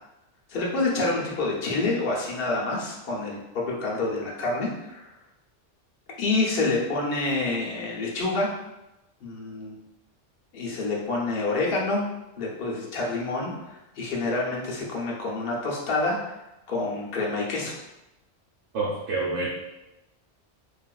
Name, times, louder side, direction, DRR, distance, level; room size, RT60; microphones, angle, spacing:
voice 1, 0.5-5.1 6.2-8.5 9.2-9.8 10.5-12.0 12.4-16.4 16.7-17.8, left 2 dB, 55° left, -3 dB, 0.9 m, -27 dB
voice 2, 18.7-19.5, right 3 dB, 80° right, -4 dB, 0.9 m, -27 dB
3.4 x 2.4 x 2.3 m, 0.94 s
omnidirectional pair, 1.2 m